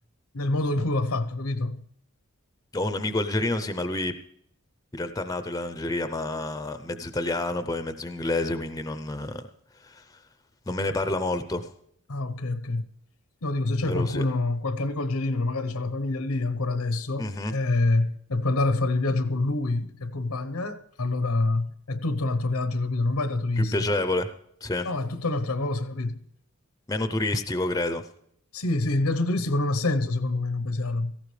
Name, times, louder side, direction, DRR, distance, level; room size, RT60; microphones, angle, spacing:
voice 1, 0.3-1.9 12.1-12.9 13.4-23.9 24.8-26.2 28.5-31.2, left 2 dB, 80° left, 0.9 m, -26 dB
voice 2, 2.7-4.1 4.9-9.4 9.8-10.0 10.7-11.7 13.9-14.2 17.2-17.5 23.6-24.3 24.6-24.9 26.9-28.0, left 2 dB, 15° left, 0.6 m, -28 dB
17.0 x 14.5 x 3.2 m
head